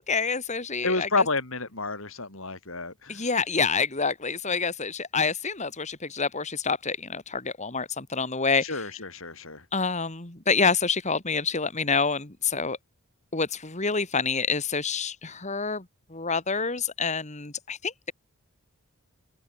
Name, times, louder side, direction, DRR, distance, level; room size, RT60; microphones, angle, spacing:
voice 1, 0.0-1.1 3.1-8.9 9.7-12.8 13.3-15.8 16.1-18.1, left 5 dB, 30° left, 2.4 m, -27 dB
voice 2, 0.8-3.2 8.6-9.6, left 3 dB, 60° left, 5.4 m, -29 dB
head